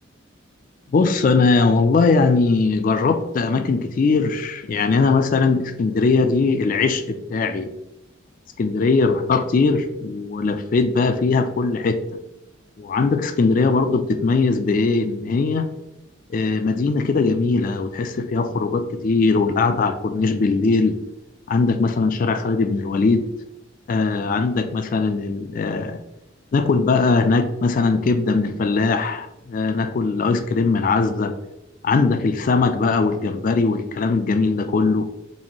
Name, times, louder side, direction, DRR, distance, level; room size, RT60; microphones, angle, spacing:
voice 1, 0.9-7.7 8.6-12.0 12.8-15.7 16.3-21.0 21.5-23.3 23.9-26.0 26.5-31.3 31.8-35.1, left 4 dB, 40° left, 8 dB, 0.3 m, -20 dB
4.1 x 2.6 x 2.9 m, 0.89 s
head